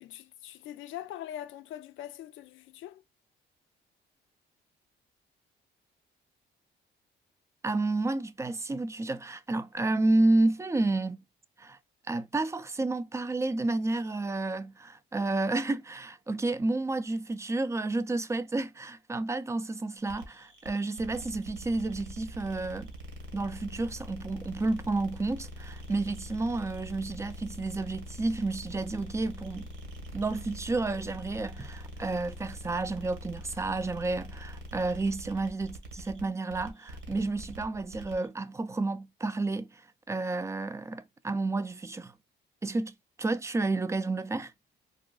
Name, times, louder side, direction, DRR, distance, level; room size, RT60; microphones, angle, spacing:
voice 1, 0.0-3.0, left 12 dB, 80° left, 0.4 m, -42 dB
voice 2, 7.6-11.2 11.6-11.8 12.1-22.9 23.3-29.7 30.1-42.1 42.6-44.5, right 2 dB, 15° right, 0.4 m, -31 dB
sound 1, 20.1-38.3, equal, 85° right, 1.3 m, -44 dB
3.8 x 2.4 x 2.3 m
cardioid pair, 90°, 20 cm